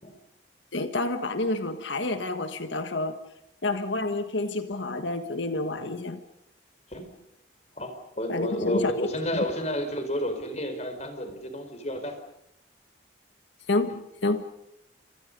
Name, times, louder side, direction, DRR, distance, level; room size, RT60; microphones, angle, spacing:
voice 1, 0.7-3.2 3.6-6.2 8.3-8.9 9.3-9.4 13.7-14.5, left 2 dB, 75° left, 8 dB, 1.5 m, -29 dB
voice 2, 7.7-12.2 13.9-14.0, equal, 35° left, 7 dB, 4.6 m, -31 dB
29.5 x 27.0 x 5.4 m, 0.78 s
head